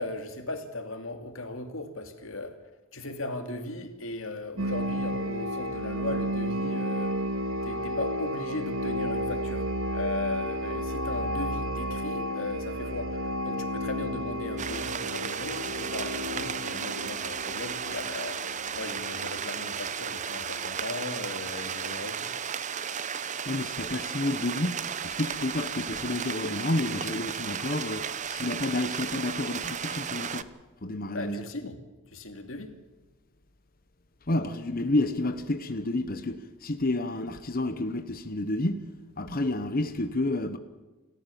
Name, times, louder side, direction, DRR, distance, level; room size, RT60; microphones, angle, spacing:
voice 1, 0.0-2.6 2.9-7.2 7.6-9.7 9.9-22.3 31.1-31.8 32.1-32.7, left 2 dB, 65° left, 2.6 m, -37 dB
sound 1, 4.6-20.0, equal, 75° right, 1.9 m, -32 dB
sound 2, 14.6-30.4, right 7 dB, 35° right, 0.7 m, -34 dB
voice 2, 23.5-30.5 30.8-31.4 34.3-38.8 39.2-40.6, left 2 dB, 45° left, 1.1 m, -30 dB
28.5 x 13.5 x 7.1 m
head